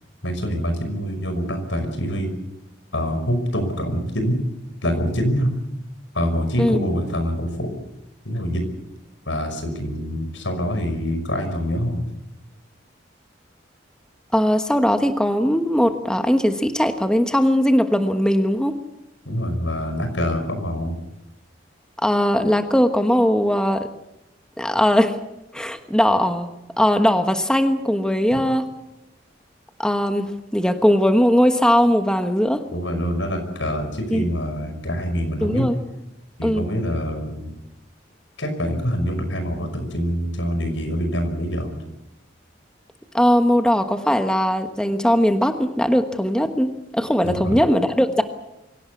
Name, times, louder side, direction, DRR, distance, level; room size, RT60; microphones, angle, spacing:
voice 1, 0.2-2.3 2.9-4.4 4.8-5.5 6.1-7.7 8.2-8.7 9.3-12.0 19.3-20.9 28.3-28.4 32.7-35.7 36.4-37.5 38.4-41.8 47.2-47.6, equal, 85° left, 7 dB, 5.6 m, -25 dB
voice 2, 14.3-18.8 22.0-23.9 24.6-25.2 25.5-26.5 26.8-28.7 29.8-32.6 34.1-34.2 35.4-35.7 36.4-36.6 43.1-48.2, equal, 5° left, 7 dB, 1.3 m, -19 dB
24.5 x 17.0 x 8.3 m, 0.91 s
head